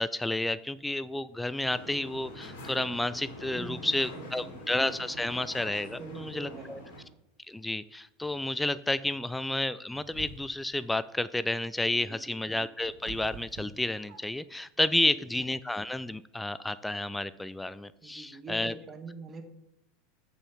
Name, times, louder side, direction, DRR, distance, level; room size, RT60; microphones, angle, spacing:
voice 1, 0.0-6.8 7.5-18.7, left 1 dB, 5° left, 16 dB, 0.3 m, -31 dB
sound 1, 1.6-7.0, left 1 dB, 65° left, 3.0 m, -45 dB
voice 2, 3.5-4.6 6.0-6.9 11.9-12.4 14.8-15.3 18.0-19.4, right 4 dB, 25° right, 6 dB, 1.4 m, -45 dB
sound 2, 9.9-10.7 12.2-14.5, right 4 dB, 50° right, 1.5 m, -47 dB
6.9 x 5.6 x 6.0 m, 0.77 s
figure-of-eight pair, 85°, 0 cm